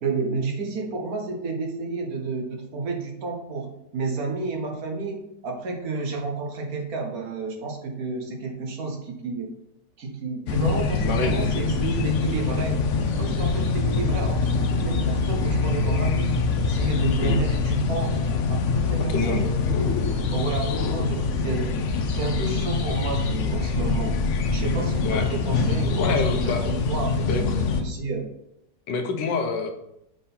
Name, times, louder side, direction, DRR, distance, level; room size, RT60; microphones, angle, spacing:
voice 1, 0.0-9.5 10.0-12.8 13.1-16.3 16.6-18.2 18.5-19.4 19.8-19.9 20.3-21.7 22.1-24.2 24.5-27.5 27.8-28.3, right 3 dB, 60° right, 2 dB, 1.4 m, -31 dB
sound 1, 10.5-27.8, left 4 dB, 65° left, 0.7 m, -24 dB
voice 2, 11.0-11.4 17.2-17.4 19.1-19.5 25.0-25.3 25.9-26.8 27.3-27.6 28.9-29.7, left 4 dB, 80° left, 5 dB, 1.5 m, -27 dB
6.7 x 3.7 x 4.2 m, 0.80 s
omnidirectional pair, 1.9 m